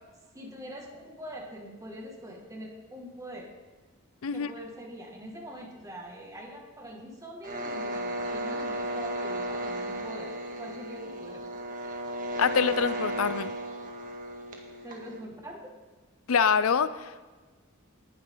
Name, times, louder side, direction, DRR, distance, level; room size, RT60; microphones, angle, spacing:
voice 1, 0.3-3.5 4.3-11.4 14.8-15.7, equal, 15° right, 0 dB, 2.2 m, -43 dB
sound 1, 7.4-15.2, right 1 dB, 40° right, 1.9 m, -34 dB
voice 2, 12.4-13.6 16.3-17.3, left 6 dB, 70° left, 14 dB, 0.5 m, -25 dB
19.5 x 10.5 x 3.9 m, 1.4 s
head